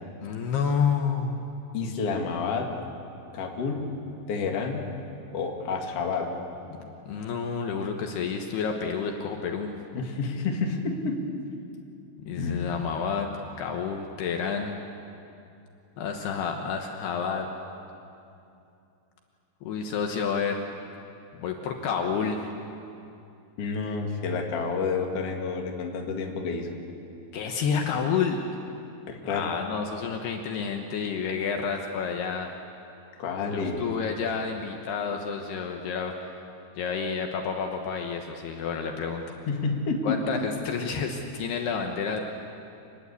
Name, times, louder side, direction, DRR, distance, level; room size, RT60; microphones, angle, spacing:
voice 1, 0.2-1.5 6.8-9.8 12.2-13.3 13.6-14.8 16.0-17.5 19.6-20.6 21.3-22.5 27.3-28.4 29.2-32.5 33.5-36.4 36.8-39.4 40.0-42.2, left 6 dB, 70° left, 3 dB, 3.0 m, -29 dB
voice 2, 1.7-2.7 3.3-3.8 4.3-4.9 5.3-6.3 9.9-11.2 12.3-12.7 23.6-26.7 29.1-29.5 33.2-33.9 39.5-40.2, left 4 dB, 45° left, 1 dB, 2.4 m, -29 dB
26.5 x 21.0 x 8.4 m, 2.7 s
omnidirectional pair, 5.3 m